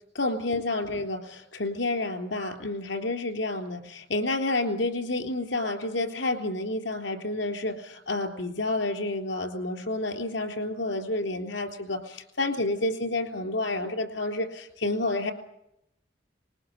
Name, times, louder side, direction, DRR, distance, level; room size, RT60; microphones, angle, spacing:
voice 1, 0.2-15.3, left 2 dB, 80° left, 7 dB, 3.5 m, -29 dB
20.5 x 19.5 x 8.0 m, 0.81 s
head